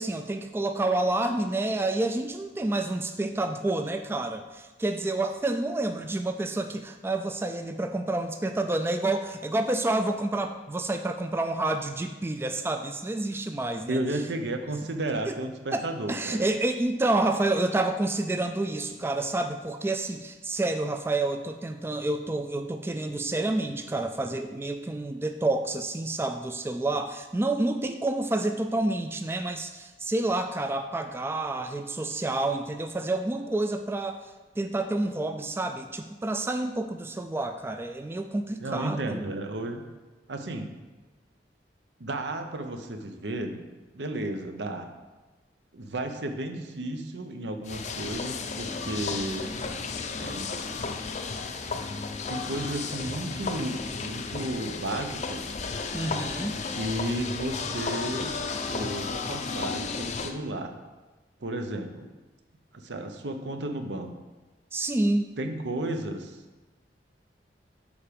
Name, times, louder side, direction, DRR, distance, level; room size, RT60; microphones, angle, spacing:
voice 1, 0.0-14.0 15.3-15.4 15.7-15.8 16.1-34.2 34.6-39.3 55.9-56.6 64.7-65.3, right 2 dB, 15° right, 6 dB, 0.3 m, -29 dB
voice 2, 13.9-16.5 38.6-39.9 40.3-40.7 42.0-43.6 43.9-44.9 45.7-49.5 50.2-50.5 52.3-55.6 56.7-58.4 58.7-60.8 61.4-62.1 62.7-64.1 65.4-66.4, right 1 dB, 80° right, 6 dB, 0.8 m, -33 dB
sound 1, 47.6-60.3, left 4 dB, 40° left, 0.5 m, -33 dB
7.2 x 4.8 x 5.1 m, 1.2 s
head